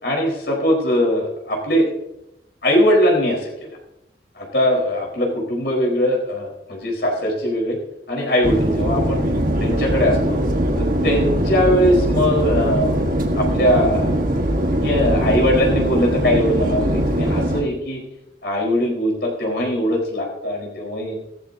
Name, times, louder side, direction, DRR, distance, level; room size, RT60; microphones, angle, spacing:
voice 1, 0.0-1.9 2.6-3.7 4.3-7.8 8.1-9.2 9.6-10.4 10.8-13.0 13.3-14.2 14.8-18.0 18.4-21.2, equal, 70° left, -2 dB, 4.1 m, -20 dB
sound 1, 8.4-17.6, right 1 dB, 50° right, 1.4 m, -21 dB
17.0 x 13.5 x 2.7 m, 0.90 s
head